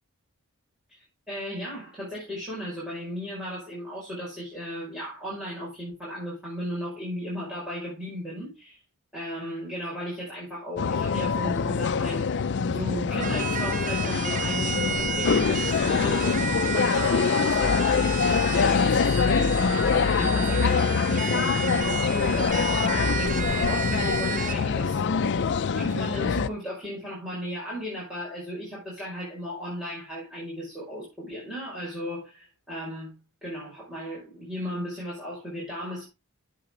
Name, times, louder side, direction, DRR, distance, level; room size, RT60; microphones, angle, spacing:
voice 1, 1.3-8.8 9.1-12.3 12.6-25.4 25.7-36.1, equal, 5° right, 5.7 m, -35 dB
sound 1, 10.8-26.5, left 5 dB, 55° left, 0.4 m, -24 dB
sound 2, 13.2-24.5, right 7 dB, 35° right, 0.4 m, -32 dB
8.9 x 7.7 x 3.8 m
head